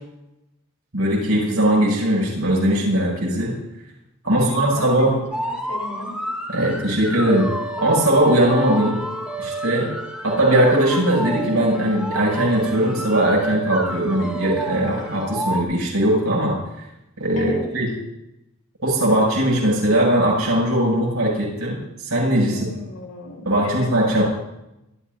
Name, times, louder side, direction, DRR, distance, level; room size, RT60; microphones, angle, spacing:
voice 1, 0.9-3.5 4.2-5.2 6.5-7.5 7.8-9.0 9.4-9.9 10.2-16.5 17.2-17.9 18.8-22.6 23.4-24.2, right 1 dB, 75° right, -3 dB, 7.6 m, -19 dB
voice 2, 4.3-5.2 5.7-6.1 17.4-17.7 22.5-24.2, left 1 dB, 75° left, 0 dB, 4.3 m, -35 dB
sound 1, 5.3-15.6, right 2 dB, 5° right, 1.8 m, -30 dB
27.0 x 14.0 x 2.8 m, 0.90 s
head